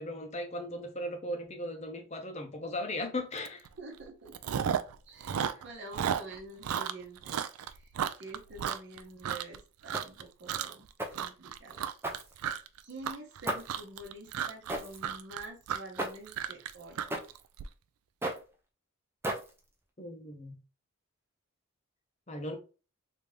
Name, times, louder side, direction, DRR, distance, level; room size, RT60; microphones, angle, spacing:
voice 1, 0.0-3.7 20.0-20.6 22.3-22.6, left 1 dB, 30° left, 0.7 m, -37 dB
Chewing mastication, 3.5-3.7 4.0-5.0 5.2-9.6 9.9-10.2 10.5-10.9 11.1-17.6, right 8 dB, 85° right, 0.3 m, -34 dB
voice 2, 3.8-4.5 5.0-11.8 12.8-17.1, right 2 dB, 55° right, 0.8 m, -47 dB
sound 1, 9.9-10.3 11.0-11.3 12.0-12.7 13.5-13.8 14.7-15.1 16.0-16.3 17.1-17.4 18.2-18.5 19.2-19.7, right 1 dB, 10° right, 0.5 m, -36 dB
3.3 x 2.7 x 3.2 m
head